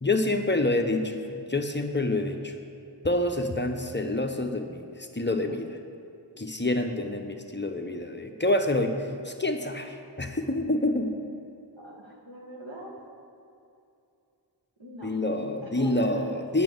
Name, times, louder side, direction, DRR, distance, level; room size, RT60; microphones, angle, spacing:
voice 1, 0.0-2.5 3.0-5.8 6.4-11.1 15.0-16.6, left 2 dB, 25° left, 5 dB, 0.8 m, -27 dB
voice 2, 11.8-12.9 14.8-15.1 15.6-16.3, right 1 dB, 85° right, -2 dB, 1.9 m, -40 dB
9.0 x 6.3 x 7.8 m, 2.6 s
wide cardioid pair, 60°, 45 cm